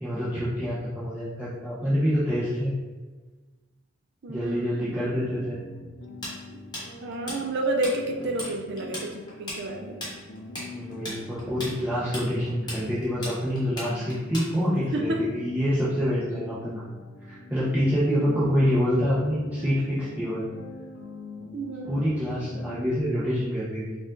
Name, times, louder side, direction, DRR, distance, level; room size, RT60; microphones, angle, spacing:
voice 1, 0.0-2.7 4.3-5.6 10.7-16.8 17.2-20.4 21.9-24.0, equal, 10° right, -11 dB, 0.8 m, -26 dB
voice 2, 4.2-4.7 6.5-6.6 7.0-10.1 14.9-15.2 18.2-18.7 21.5-22.3, right 2 dB, 60° right, 2 dB, 0.5 m, -30 dB
sound 1, 4.8-23.0, left 1 dB, 60° left, 0.6 m, -44 dB
Tools, 6.2-7.9 8.2-8.5 8.8-14.8, left 1 dB, 25° left, 1.3 m, -36 dB
5.1 x 2.4 x 3.8 m, 1.3 s
head